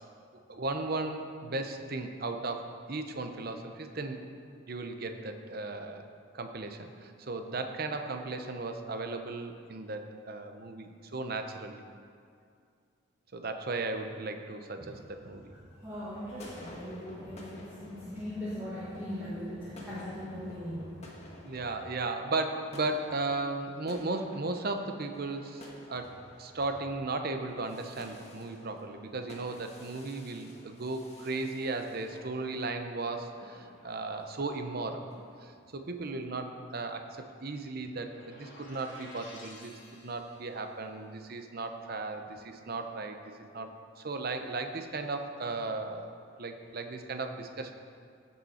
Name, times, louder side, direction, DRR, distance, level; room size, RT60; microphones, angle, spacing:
voice 1, 0.5-4.2 4.7-6.0 6.3-11.8 13.3-15.5 21.4-35.1 35.4-43.2 43.5-47.7, right 3 dB, 50° right, 6 dB, 0.7 m, -36 dB
voice 2, 15.8-21.3, equal, 10° right, -11 dB, 1.6 m, -39 dB
sound 1, 16.1-35.6, left 1 dB, 35° left, 1.3 m, -53 dB
sound 2, 37.9-40.7, left 2 dB, 65° left, 1.8 m, -52 dB
15.5 x 5.6 x 4.3 m, 2.3 s
head